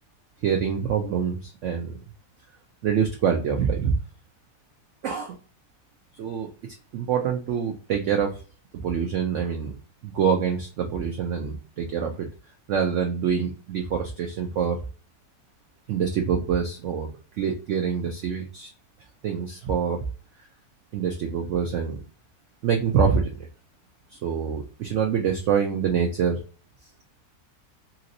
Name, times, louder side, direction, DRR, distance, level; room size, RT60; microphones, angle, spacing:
voice 1, 0.4-2.0 2.8-3.9 5.0-5.4 6.2-6.5 6.9-8.3 8.7-9.7 10.0-12.3 12.7-14.8 15.9-17.1 17.4-18.7 19.2-20.0 20.9-22.0 22.6-23.5 24.2-26.4, right 7 dB, 80° right, 3 dB, 0.6 m, -25 dB
3.0 x 2.8 x 2.6 m, 0.36 s
omnidirectional pair, 1.9 m